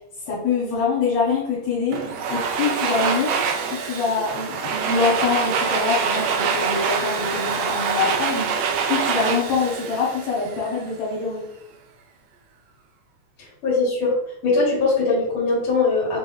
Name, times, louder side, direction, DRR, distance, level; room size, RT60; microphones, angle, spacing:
voice 1, 0.3-2.0 2.3-3.4 3.7-11.5, left 5 dB, 70° left, -5 dB, 2.3 m, -24 dB
Domestic sounds home sounds, 1.9-10.8, right 6 dB, 75° right, 1.6 m, -25 dB
voice 2, 13.6-14.2 14.4-16.2, left 3 dB, 50° left, -4 dB, 2.4 m, -20 dB
6.1 x 3.4 x 2.5 m, 0.77 s
omnidirectional pair, 3.4 m